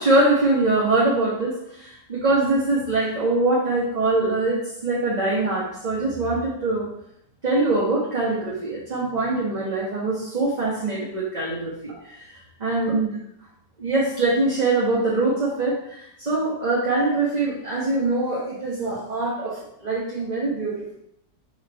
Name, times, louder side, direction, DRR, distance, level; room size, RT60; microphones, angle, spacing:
voice 1, 0.0-6.9 7.4-13.2 13.8-21.0, right 2 dB, 25° right, -6 dB, 1.3 m, -23 dB
4.9 x 4.5 x 5.5 m, 0.77 s
omnidirectional pair, 1.9 m